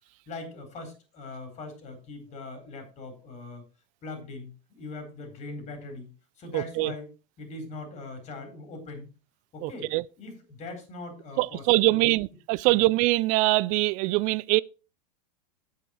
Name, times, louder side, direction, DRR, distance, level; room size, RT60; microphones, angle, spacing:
voice 1, 0.3-3.6 4.0-6.1 6.4-7.1 7.4-9.1 9.5-9.9 10.2-12.2 12.6-12.8, left 2 dB, 35° left, 4.1 m, -41 dB
voice 2, 6.5-6.9 9.6-10.0 11.4-14.6, right 20 dB, 40° right, 0.4 m, -23 dB
8.4 x 8.4 x 4.4 m
hypercardioid pair, 100°, 21 cm